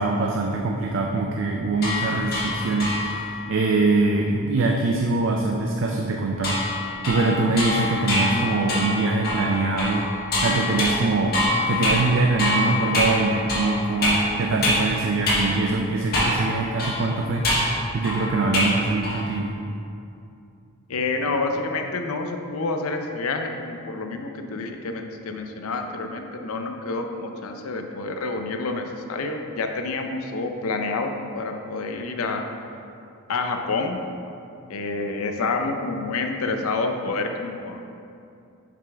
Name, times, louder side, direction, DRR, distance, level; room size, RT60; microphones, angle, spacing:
voice 1, 0.0-6.6 7.0-10.1 10.4-17.7 17.9-19.5, right 3 dB, 60° right, 1 dB, 0.4 m, -23 dB
sound 1, 1.8-3.4 6.4-14.9 15.3-15.4 16.1-16.5 16.8-18.8 19.0-19.4, left 1 dB, 45° left, 1.4 m, -25 dB
voice 2, 20.9-32.4 33.3-34.0 34.7-37.8, left 3 dB, 80° left, 4 dB, 0.5 m, -28 dB
6.8 x 5.0 x 3.4 m, 2.5 s
head